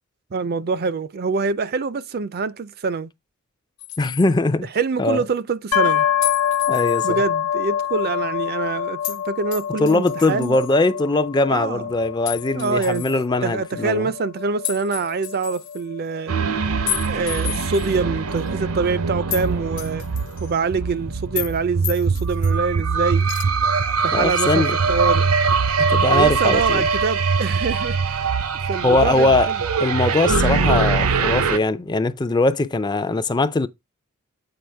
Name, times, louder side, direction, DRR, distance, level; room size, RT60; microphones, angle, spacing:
voice 1, 0.3-3.1 4.7-6.1 7.0-10.6 11.5-11.9 12.5-13.1 13.4-16.3 17.0-20.1 20.4-23.3 24.0-25.3 26.1-28.2 28.7-29.6, right 4 dB, 45° right, 0.5 m, -25 dB
sound 1, 3.8-4.3 6.2-7.1 9.0-9.2 9.5-10.7 12.2-13.2 14.6-15.8 16.9-18.0 18.4-18.5 19.3-19.5 19.8-20.6 21.3-21.6 21.8-22.5 23.2-23.4, left 14 dB, 55° left, 1.0 m, -31 dB
voice 2, 4.0-4.7 5.0-5.2 6.7-7.2 9.8-14.1 24.1-24.8 25.9-26.9 28.8-29.5 29.8-33.7, left 2 dB, 20° left, 0.4 m, -21 dB
sound 2, 5.7-19.4, left 9 dB, 75° left, 0.6 m, -27 dB
sound 3, 16.3-31.6, right 5 dB, 75° right, 0.7 m, -22 dB
7.8 x 4.7 x 3.4 m
head